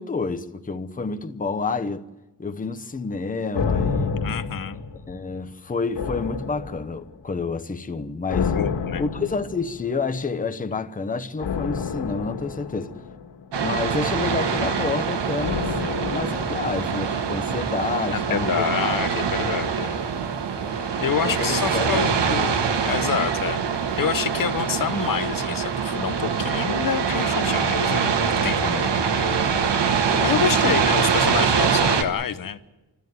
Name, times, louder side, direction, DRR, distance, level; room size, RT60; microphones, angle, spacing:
voice 1, 0.0-2.1 2.4-4.2 5.1-8.6 9.0-12.9 13.6-15.8 16.1-19.0 21.2-22.0 30.1-30.8, left 4 dB, 20° left, 0.9 m, -29 dB
sound 1, 3.5-5.5 6.0-7.2 8.3-10.0 11.4-13.8 15.4-17.6 17.9-18.0, left 5 dB, 90° left, 1.9 m, -29 dB
voice 2, 4.2-4.8 8.5-9.0 18.1-20.0 21.0-22.6 22.8-23.6 24.0-28.9 29.1-29.4 30.2-32.6, left 8 dB, 55° left, 1.0 m, -27 dB
sound 2, 13.5-32.0, right 6 dB, 85° right, 1.7 m, -24 dB
30.0 x 13.0 x 9.4 m
wide cardioid pair, 145°, 41 cm